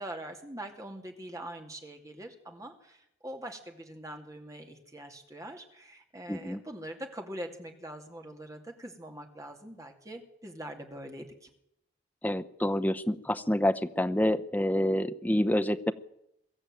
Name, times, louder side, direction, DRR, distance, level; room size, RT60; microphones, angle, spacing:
voice 1, 0.0-11.5, right 1 dB, 15° right, 3 dB, 2.5 m, -43 dB
voice 2, 6.3-6.6 12.2-15.9, left 1 dB, 10° left, 10 dB, 0.8 m, -27 dB
23.0 x 13.0 x 9.1 m, 0.81 s
head